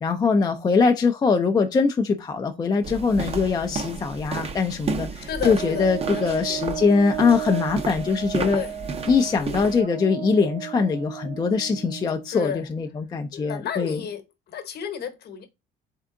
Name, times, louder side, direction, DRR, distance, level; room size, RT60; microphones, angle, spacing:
voice 1, 0.0-8.6 9.1-14.0, left 5 dB, 20° left, 0.4 m, -22 dB
sound 1, 2.8-9.8, right 4 dB, 30° right, 0.6 m, -32 dB
voice 2, 5.3-6.6 8.5-8.8 9.3-9.6 12.3-12.7 13.3-14.2 14.5-15.5, left 8 dB, 50° left, 1.0 m, -32 dB
Brass instrument, 5.6-12.3, right 11 dB, 80° right, 1.8 m, -34 dB
3.6 x 3.4 x 3.7 m
cardioid pair, 135°, 21 cm